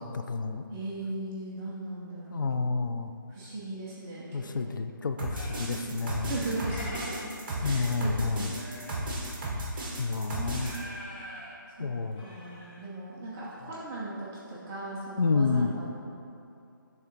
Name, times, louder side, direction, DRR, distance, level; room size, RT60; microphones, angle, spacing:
voice 1, 0.0-0.6 2.3-3.1 4.3-6.4 7.6-8.5 10.0-10.7 11.8-12.2 15.2-15.7, left 4 dB, 65° left, 7 dB, 0.4 m, -29 dB
voice 2, 0.7-2.6 3.3-4.7 5.6-5.9 6.2-7.2 7.6-8.6 9.4-9.8 10.2-10.9 11.8-11.9 12.2-15.9, right 2 dB, 5° right, -8 dB, 0.3 m, -38 dB
sound 1, 5.2-10.8, right 1 dB, 25° right, 0.9 m, -34 dB
sound 2, 5.3-9.2 9.6-9.9 10.4-11.6 11.9-12.8 13.1-13.2 13.4-13.7, left 1 dB, 30° left, 0.9 m, -45 dB
7.9 x 3.6 x 3.8 m, 2.6 s
hypercardioid pair, 170°, 11 cm